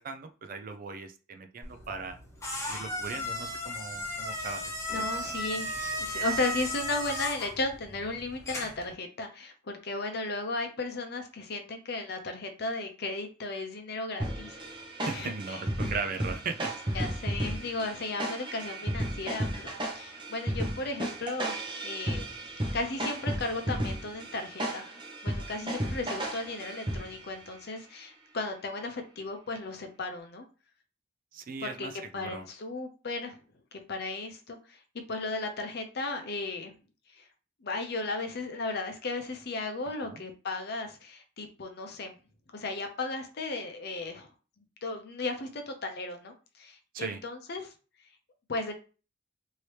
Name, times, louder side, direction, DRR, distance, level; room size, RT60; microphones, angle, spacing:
voice 1, 0.0-2.2 2.7-4.6 4.9-5.0 15.0-16.7 17.4-17.5 31.3-32.5 40.0-40.2 46.9-47.2, right 4 dB, 45° right, 7 dB, 0.4 m, -38 dB
sound 1, 1.6-8.9, equal, 15° left, 0.8 m, -35 dB
voice 2, 4.9-14.6 15.1-15.6 16.9-22.3 22.7-24.9 25.2-30.5 31.6-33.4 33.7-34.8 35.1-36.7 37.1-37.3 37.6-42.2 42.5-44.3 44.6-47.7 48.5-48.7, left 2 dB, 55° left, 5 dB, 0.6 m, -35 dB
sound 2, 14.2-27.4, right 1 dB, 25° right, 0.8 m, -34 dB
3.1 x 2.7 x 3.2 m, 0.35 s
head